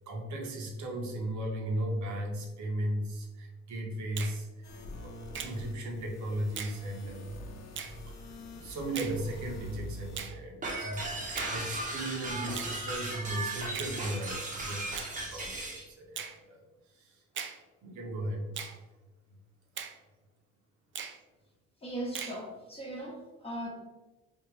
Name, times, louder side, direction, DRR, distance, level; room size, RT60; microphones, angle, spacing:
voice 1, 0.1-7.4 8.2-16.6 16.9-17.2 17.8-18.5, right 1 dB, 70° right, 0 dB, 0.9 m, -36 dB
Finger snapping, 4.2-4.4 5.3-5.6 6.6-6.8 7.8-8.0 9.0-9.2 10.2-10.4 11.4-11.6 12.6-12.8 13.7-14.0 15.0-15.1 16.2-16.4 17.4-17.6 18.6-18.8 19.8-20.0 21.0-21.2 22.2-22.4, right 7 dB, 40° right, 0.4 m, -39 dB
sound 1, 4.6-10.2, left 1 dB, 60° left, 0.7 m, -45 dB
sound 2, 10.6-15.8, right 2 dB, 25° right, 0.8 m, -36 dB
voice 2, 21.8-23.7, right 1 dB, 20° left, -4 dB, 0.8 m, -38 dB
3.5 x 2.5 x 3.1 m, 1.1 s
cardioid pair, 90°, 30 cm